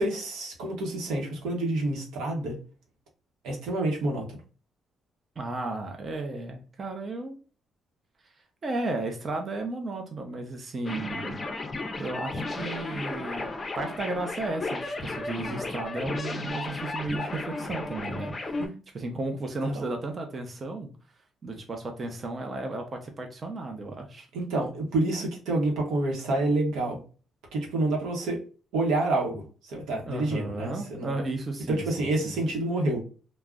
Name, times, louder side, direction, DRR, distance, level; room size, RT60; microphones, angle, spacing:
voice 1, 0.0-2.6 3.4-4.4 18.6-18.7 19.6-19.9 24.3-27.0 27.5-28.4 28.7-31.1 31.7-33.0, right 2 dB, 90° right, 0 dB, 0.8 m, -28 dB
voice 2, 5.4-7.4 8.6-11.4 12.0-13.5 13.8-18.6 18.9-20.9 21.4-24.3 30.1-32.3, right 2 dB, 40° right, 4 dB, 0.5 m, -34 dB
sound 1, 10.9-18.7, left 2 dB, 30° left, 0.5 m, -34 dB
2.4 x 2.0 x 3.4 m, 0.38 s
cardioid pair, 90°, 0 cm